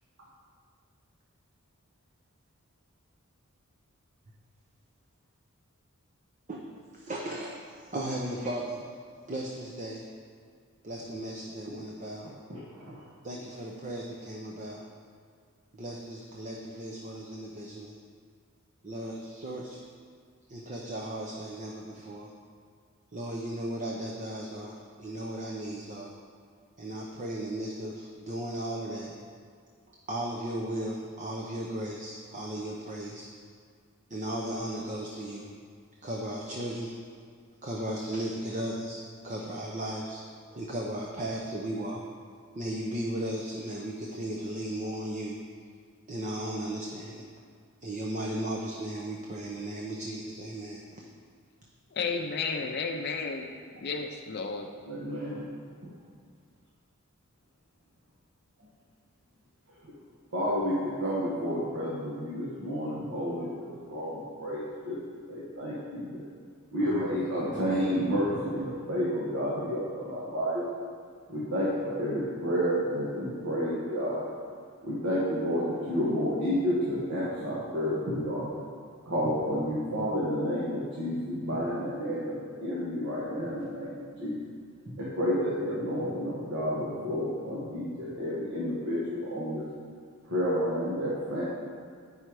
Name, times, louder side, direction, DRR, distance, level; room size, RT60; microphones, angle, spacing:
voice 1, 6.9-7.5 7.9-8.8 9.3-10.1 10.8-12.3 13.2-14.8 15.7-18.0 18.8-19.8 20.5-22.3 23.1-26.1 26.8-29.2 29.9-33.3 34.1-35.5 36.0-37.0 37.6-40.2 40.5-42.0 42.6-45.4 46.1-47.3 47.8-51.0, right 1 dB, 35° right, -1 dB, 0.7 m, -36 dB
voice 2, 12.5-13.0 54.9-55.4 60.3-65.0 65.3-66.2 66.7-70.6 71.3-74.2 74.8-78.5 79.1-84.4 85.0-89.6 90.2-91.4, equal, 60° right, -7 dB, 1.3 m, -30 dB
voice 3, 51.9-53.4 53.8-54.7, left 4 dB, 50° left, 3 dB, 0.5 m, -32 dB
8.9 x 5.5 x 4.7 m, 2.1 s
head